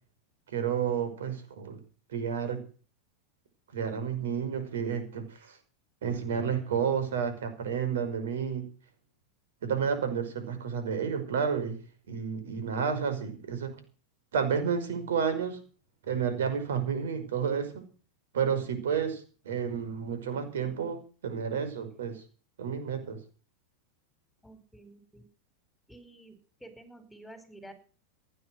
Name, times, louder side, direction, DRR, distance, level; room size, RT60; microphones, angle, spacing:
voice 1, 0.5-1.8 2.1-2.6 3.7-5.6 6.0-8.7 9.6-13.8 14.3-15.6 16.1-17.8 18.3-22.2 22.6-23.2, right 7 dB, 75° right, 9 dB, 5.4 m, -31 dB
voice 2, 24.4-25.2 25.9-27.7, right 1 dB, 5° left, 10 dB, 4.9 m, -50 dB
16.0 x 11.0 x 6.3 m, 0.39 s
hypercardioid pair, 100°, 0 cm